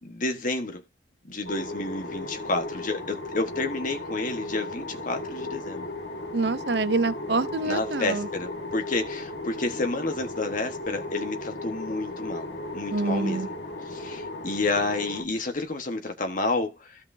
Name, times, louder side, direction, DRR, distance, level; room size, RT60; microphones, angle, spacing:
voice 1, 0.0-0.8 1.3-5.9 7.6-12.5 12.7-13.4 13.9-17.0, left 2 dB, 50° left, 1.3 m, -30 dB
sound 1, 1.5-15.2, left 2 dB, 70° left, 1.5 m, -36 dB
voice 2, 6.3-8.3 12.9-13.5, right 3 dB, 70° right, 0.7 m, -26 dB
15.0 x 5.7 x 2.7 m
head